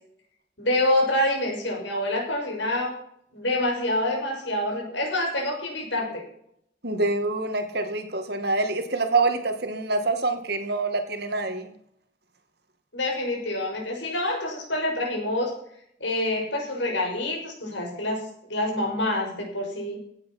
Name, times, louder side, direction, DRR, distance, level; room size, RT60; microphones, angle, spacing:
voice 1, 0.6-2.9 3.3-6.2 12.9-15.5 16.0-20.0, left 1 dB, 70° left, 0 dB, 6.7 m, -27 dB
voice 2, 6.8-11.7, right 3 dB, 55° right, 7 dB, 2.1 m, -26 dB
17.0 x 9.6 x 5.9 m, 0.68 s
head